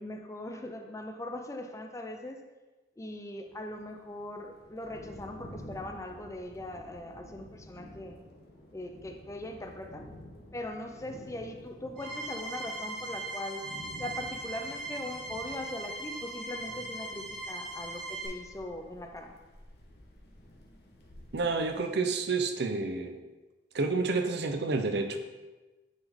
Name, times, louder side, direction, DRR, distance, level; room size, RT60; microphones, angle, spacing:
voice 1, 0.0-2.4 3.0-8.2 8.7-10.1 10.5-13.6 14.0-19.3, left 1 dB, 15° left, 4 dB, 0.5 m, -40 dB
sound 1, 3.4-21.8, left 1 dB, 60° left, 1.0 m, -51 dB
sound 2, 12.0-18.3, right 2 dB, 80° right, 2.2 m, -39 dB
voice 2, 21.3-23.2 23.7-25.2, right 3 dB, 65° right, 7 dB, 0.6 m, -29 dB
9.1 x 3.6 x 3.5 m, 1.2 s
head